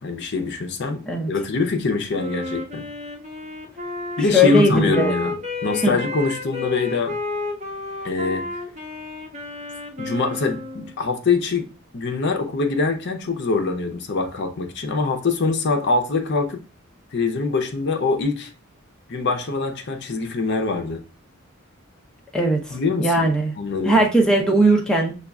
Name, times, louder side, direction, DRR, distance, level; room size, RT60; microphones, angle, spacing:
voice 1, 0.0-1.0 1.3-2.8 4.2-5.3 5.6-7.1 8.0-8.4 10.0-11.7 11.9-16.6 17.1-18.5 19.1-21.0 22.7-23.3 23.6-24.0, left 3 dB, 55° left, 5 dB, 0.6 m, -23 dB
Wind instrument woodwind instrument, 2.1-11.0, left 2 dB, 35° right, 0.8 m, -31 dB
voice 2, 4.3-5.1 5.8-5.9 22.3-23.5 23.8-25.1, equal, 5° left, -1 dB, 0.5 m, -18 dB
6.4 x 2.3 x 2.3 m, 0.35 s
head